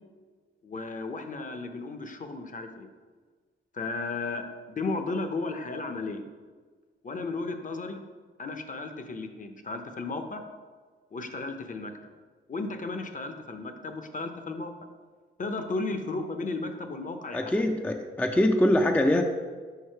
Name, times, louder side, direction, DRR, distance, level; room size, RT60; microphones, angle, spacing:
voice 1, 0.6-2.9 3.7-4.5 4.8-6.3 7.0-8.0 8.4-10.4 11.1-11.9 12.5-14.7 15.4-17.5, left 3 dB, 40° left, 7 dB, 0.7 m, -34 dB
voice 2, 17.3-19.2, left 1 dB, 5° left, 4 dB, 0.4 m, -23 dB
5.5 x 4.7 x 4.5 m, 1.5 s
cardioid pair, 85°, 21 cm